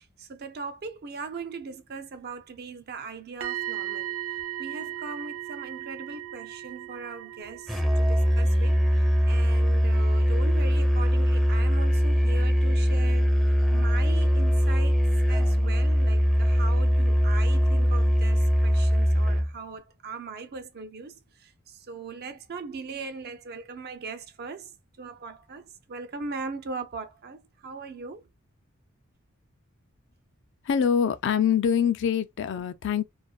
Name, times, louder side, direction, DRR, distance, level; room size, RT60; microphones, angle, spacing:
voice 1, 0.0-4.1 4.6-15.0 15.3-21.1 21.4-24.7 25.0-28.2, right 4 dB, 50° right, 0.5 m, -39 dB
sound 1, 3.4-11.3 11.5-11.8, right 14 dB, 85° right, 0.7 m, -38 dB
Musical instrument, 7.7-19.5, equal, ahead, 0.5 m, -22 dB
voice 2, 30.6-33.0, left 8 dB, 60° left, 0.4 m, -24 dB
2.5 x 2.2 x 2.2 m
head